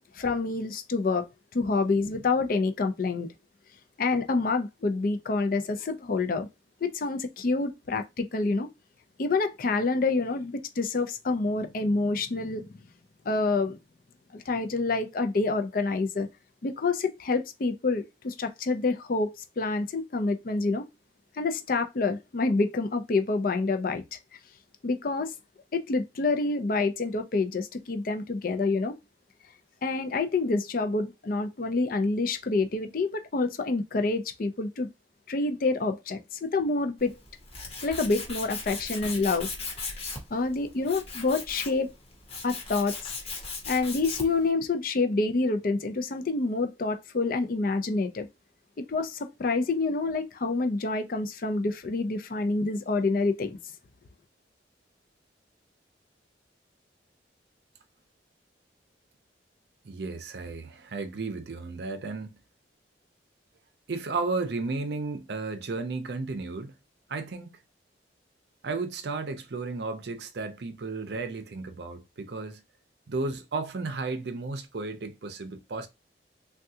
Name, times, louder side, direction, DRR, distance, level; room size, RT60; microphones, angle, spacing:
voice 1, 0.2-1.3 1.5-3.3 4.0-6.5 6.8-8.7 9.2-12.8 13.3-13.8 14.3-16.3 16.6-19.3 19.6-20.8 21.4-24.2 24.8-25.3 25.7-28.9 29.8-34.9 35.3-37.2 37.8-39.5 40.3-41.9 42.4-43.1 43.7-48.3 48.8-53.6, left 3 dB, 50° left, 0.5 m, -27 dB
Tools, 37.0-44.5, left 4 dB, 35° left, 0.9 m, -38 dB
voice 2, 59.8-62.4 63.9-66.7 67.1-67.5 68.6-72.6 73.1-75.9, right 3 dB, 60° right, 0.5 m, -33 dB
3.5 x 2.3 x 2.7 m
head